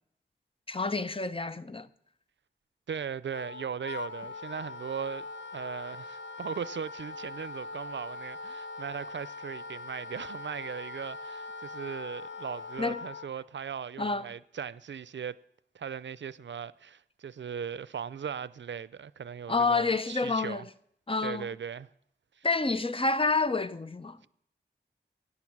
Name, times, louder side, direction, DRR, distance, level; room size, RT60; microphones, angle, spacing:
voice 1, 0.7-1.9 12.8-13.0 14.0-14.3 19.5-20.7 21.1-21.5 22.4-24.3, left 3 dB, 30° left, 0.6 m, -28 dB
voice 2, 2.9-5.3 5.5-15.4 15.7-20.6 21.2-21.9 22.4-22.5, right 7 dB, 85° right, 0.4 m, -38 dB
Wind instrument woodwind instrument, 3.3-13.3, left 3 dB, 90° left, 1.0 m, -41 dB
17.0 x 9.8 x 6.0 m
wide cardioid pair, 70°, 18 cm